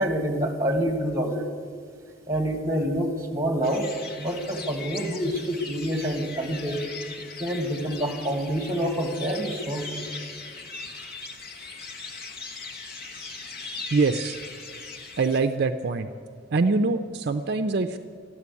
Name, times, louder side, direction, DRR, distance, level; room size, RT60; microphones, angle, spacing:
voice 1, 0.0-1.5 2.3-3.9 4.2-6.8 7.4-10.0, equal, 15° right, 3 dB, 1.9 m, -27 dB
sound 1, 3.6-15.4, left 4 dB, 50° left, 1.5 m, -39 dB
voice 2, 13.9-14.4 15.2-16.1 16.5-18.0, right 3 dB, 55° right, 8 dB, 0.5 m, -24 dB
14.0 x 11.0 x 8.4 m, 2.1 s
head